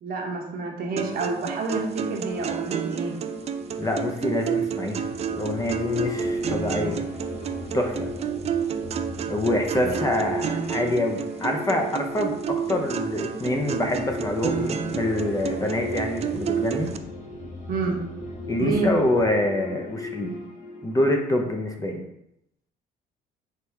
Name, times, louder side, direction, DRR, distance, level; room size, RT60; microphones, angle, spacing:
voice 1, 0.0-3.1 9.8-9.9 17.7-18.0 18.6-18.9, right 4 dB, 60° right, 1 dB, 1.1 m, -28 dB
sound 1, 1.0-17.0, right 8 dB, 40° right, 0.4 m, -31 dB
sound 2, 2.3-21.2, left 1 dB, 50° left, 1.2 m, -35 dB
voice 2, 3.8-5.0 5.3-7.1 7.7-8.1 9.3-16.9 18.5-20.3 20.8-22.0, left 1 dB, 20° left, 3 dB, 0.7 m, -26 dB
4.7 x 3.3 x 3.4 m, 0.80 s
cardioid pair, 110°, 17 cm